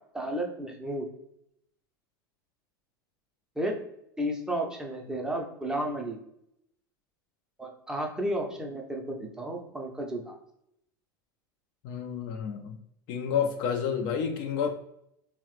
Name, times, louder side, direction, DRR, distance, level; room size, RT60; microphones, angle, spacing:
voice 1, 0.1-1.1 3.6-3.8 4.2-6.2 7.6-10.4, right 1 dB, 5° right, 1 dB, 0.5 m, -32 dB
voice 2, 11.8-12.8 13.1-14.7, left 7 dB, 45° left, 5 dB, 0.3 m, -30 dB
3.0 x 2.0 x 3.0 m, 0.77 s
figure-of-eight pair, 85°, 11 cm